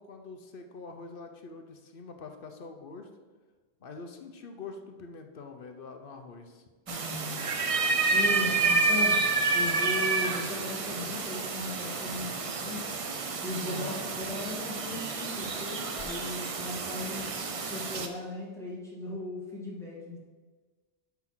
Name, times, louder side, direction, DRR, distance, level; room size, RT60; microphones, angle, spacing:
voice 1, 0.0-3.1 3.8-6.6 8.4-8.7 9.5-9.6 13.6-14.1, left 4 dB, 60° left, 5 dB, 0.9 m, -44 dB
voice 2, 6.9-7.4 8.1-9.2 9.5-12.9 13.4-17.3 17.7-20.2, left 2 dB, 5° left, -6 dB, 2.1 m, -37 dB
sound 1, 6.9-18.1, right 4 dB, 40° right, 0.6 m, -29 dB
6.0 x 5.7 x 6.0 m, 1.4 s
omnidirectional pair, 1.1 m